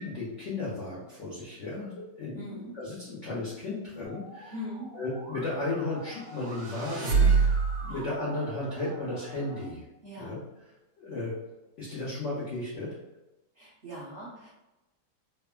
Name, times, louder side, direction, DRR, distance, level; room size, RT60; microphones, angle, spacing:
voice 1, 0.0-4.5 4.9-7.5 7.8-9.8 10.2-10.4 11.0-11.3 11.8-12.9, left 2 dB, 85° left, -7 dB, 0.6 m, -34 dB
voice 2, 2.3-2.8 4.5-4.9 7.2-7.5 7.9-8.0 10.0-10.3 13.5-14.5, equal, 50° right, -11 dB, 0.7 m, -41 dB
Musical instrument, 4.1-9.6, right 1 dB, 70° right, 1.2 m, -46 dB
sound 1, 6.2-8.0, right 5 dB, 90° right, 1.4 m, -25 dB
3.4 x 2.1 x 2.2 m, 0.99 s
omnidirectional pair, 2.1 m